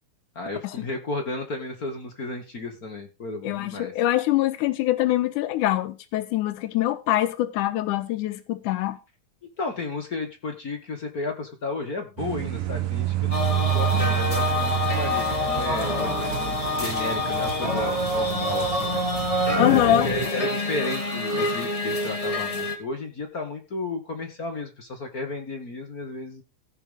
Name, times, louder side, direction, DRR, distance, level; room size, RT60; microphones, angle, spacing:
voice 1, 0.3-3.9 9.6-19.0 19.7-26.4, left 3 dB, 40° left, 1.5 m, -33 dB
voice 2, 3.4-9.0 19.6-20.1, left 14 dB, 90° left, 2.4 m, -24 dB
sound 1, 12.2-20.3, right 15 dB, 90° right, 2.7 m, -29 dB
sound 2, 13.3-22.8, left 2 dB, 20° left, 0.8 m, -26 dB
16.0 x 5.7 x 5.2 m
omnidirectional pair, 3.5 m